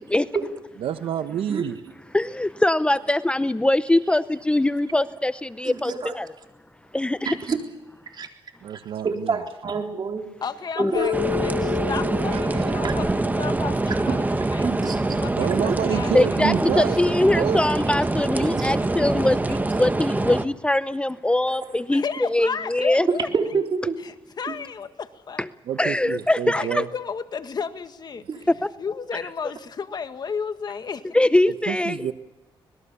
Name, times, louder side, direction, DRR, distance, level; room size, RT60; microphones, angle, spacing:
voice 1, 0.8-1.8 8.6-9.4 12.3-12.6 15.4-17.0 17.3-17.6 25.7-26.9 31.7-32.1, right 9 dB, 80° right, 11 dB, 1.1 m, -28 dB
voice 2, 2.1-6.3 6.9-7.4 10.8-10.9 16.1-23.1 25.4-25.5 25.8-26.8 28.5-28.7 31.1-32.1, left 1 dB, 10° left, 14 dB, 0.7 m, -22 dB
voice 3, 5.6-6.1 7.2-7.6 8.1-8.3 9.0-10.3 10.8-11.2 12.8-12.9 13.9-14.2 14.6-15.6 18.5-18.8 21.5-21.7 23.1-24.0 24.4-24.5 28.3-28.4, right 5 dB, 50° right, 3 dB, 3.9 m, -28 dB
voice 4, 10.4-13.1 13.3-14.9 15.2-17.1 21.9-23.3 24.0-25.5 26.5-28.5 28.8-31.3, left 6 dB, 50° left, 9 dB, 1.6 m, -33 dB
Keyboard (musical), 10.9-14.1, left 15 dB, 85° left, 1.7 m, -31 dB
sound 1, 11.1-20.5, right 2 dB, 20° right, 1.5 m, -24 dB
25.0 x 20.5 x 7.0 m, 1.1 s
cardioid pair, 80°, 9 cm